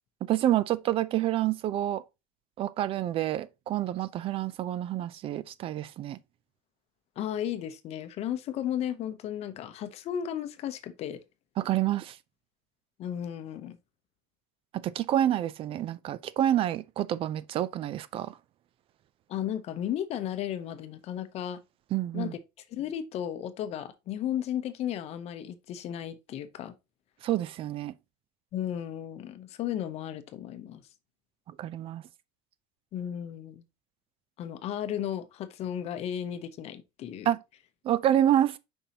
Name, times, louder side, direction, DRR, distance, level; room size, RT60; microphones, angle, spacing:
voice 1, 0.2-2.0 2.6-6.2 11.6-12.2 14.7-18.3 21.9-22.3 27.2-27.9 31.6-32.0 37.3-37.4 37.8-38.6, right 12 dB, 35° right, 0.4 m, -28 dB
voice 2, 7.2-11.2 13.0-13.8 19.3-21.6 22.1-22.4 22.7-26.7 28.5-30.8 32.9-33.6 34.4-37.3, left 10 dB, 40° left, 0.8 m, -34 dB
7.0 x 5.4 x 2.8 m
cardioid pair, 160°, 17 cm